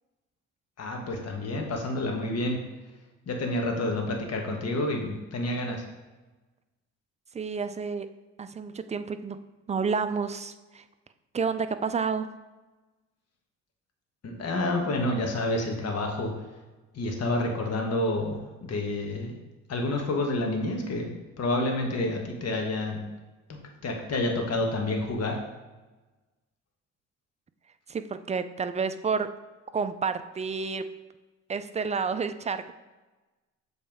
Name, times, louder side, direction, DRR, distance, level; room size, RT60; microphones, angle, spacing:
voice 1, 0.8-2.6 3.3-5.8 14.2-16.3 16.9-19.3 19.7-21.1 21.4-23.0 23.8-25.4, left 2 dB, 55° left, 2 dB, 1.4 m, -29 dB
voice 2, 7.3-8.1 8.4-9.4 9.7-10.8 11.3-12.3 27.9-29.3 29.7-30.8 31.5-32.7, right 5 dB, 25° right, 10 dB, 0.4 m, -30 dB
7.1 x 4.3 x 3.5 m, 1.2 s
cardioid pair, 90°, 30 cm